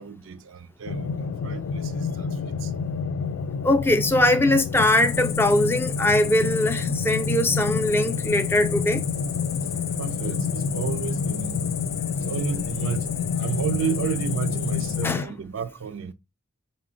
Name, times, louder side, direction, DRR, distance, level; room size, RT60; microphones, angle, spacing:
voice 1, 0.0-2.7 10.0-11.6 12.2-16.1, right 7 dB, 70° right, 0.4 m, -32 dB
sound 1, 0.9-15.2, left 5 dB, 85° left, 0.4 m, -28 dB
voice 2, 3.6-9.0 15.0-15.3, left 1 dB, 10° left, 0.3 m, -21 dB
Cricket, 4.7-15.1, left 9 dB, 50° left, 0.6 m, -35 dB
4.9 x 2.2 x 3.7 m
head